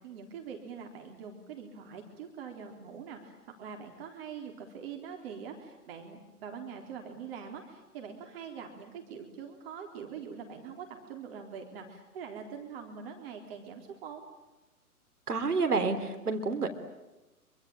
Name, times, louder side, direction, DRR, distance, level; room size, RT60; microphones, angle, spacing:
voice 1, 0.0-14.2, right 6 dB, 40° right, 3 dB, 3.8 m, -44 dB
voice 2, 15.3-16.7, right 4 dB, 80° right, 6 dB, 3.6 m, -29 dB
26.0 x 25.0 x 8.8 m, 1.1 s
figure-of-eight pair, 130°, 45 cm